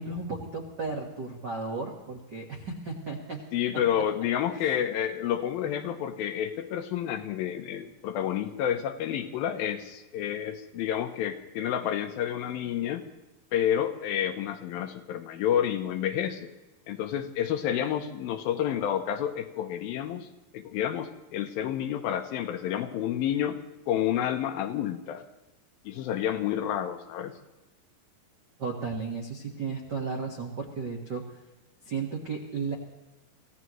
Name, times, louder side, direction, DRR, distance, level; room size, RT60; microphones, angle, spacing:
voice 1, 0.0-3.4 3.7-3.8 28.6-31.2 31.8-32.7, right 4 dB, 65° right, 0 dB, 1.0 m, -34 dB
voice 2, 3.5-13.0 13.5-16.5 16.9-20.3 20.5-23.6 23.9-25.2 25.9-27.4, left 10 dB, 75° left, 7 dB, 2.5 m, -29 dB
25.5 x 16.0 x 3.1 m, 1.1 s
omnidirectional pair, 4.6 m